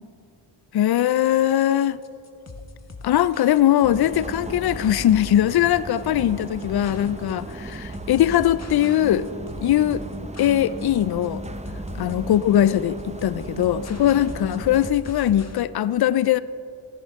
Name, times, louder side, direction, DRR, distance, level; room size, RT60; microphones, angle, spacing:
voice 1, 0.7-2.0 3.0-9.3 9.6-10.0 10.4-11.4 12.0-16.4, left 12 dB, 55° left, 17 dB, 0.5 m, -20 dB
sound 1, 1.6-15.6, left 3 dB, 30° left, 1.2 m, -40 dB
sound 2, 3.8-14.9, right 2 dB, 15° right, 0.6 m, -36 dB
16.0 x 11.0 x 3.6 m, 2.7 s
cardioid pair, 55°, 49 cm